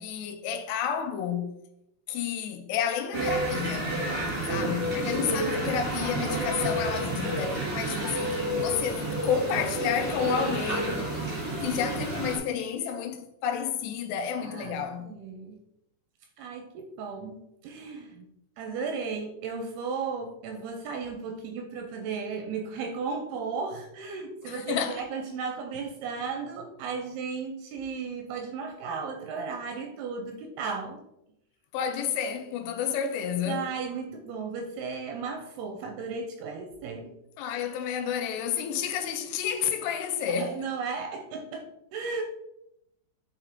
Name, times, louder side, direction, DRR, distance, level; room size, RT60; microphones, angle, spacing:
voice 1, 0.0-1.5 2.1-4.0 4.5-11.0 11.6-15.1 24.4-25.0 31.7-33.7 37.4-40.6, left 8 dB, 85° left, 2.6 m, -30 dB
sound 1, 3.1-12.4, right 1 dB, 45° right, 0.8 m, -30 dB
voice 2, 4.4-5.1 14.4-15.6 16.4-18.3 18.6-31.0 33.5-37.1 40.3-42.2, right 5 dB, 85° right, 2.3 m, -35 dB
8.3 x 3.5 x 3.6 m
omnidirectional pair, 4.9 m